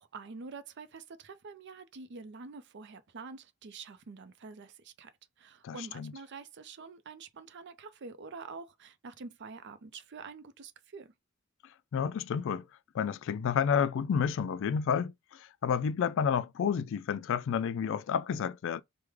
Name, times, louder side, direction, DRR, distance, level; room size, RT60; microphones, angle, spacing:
voice 1, 0.0-5.1 5.4-11.1, right 4 dB, 55° right, 0.5 m, -46 dB
voice 2, 5.6-6.1 11.9-12.6 12.9-18.8, left 7 dB, 65° left, 0.3 m, -30 dB
3.2 x 2.1 x 3.4 m
head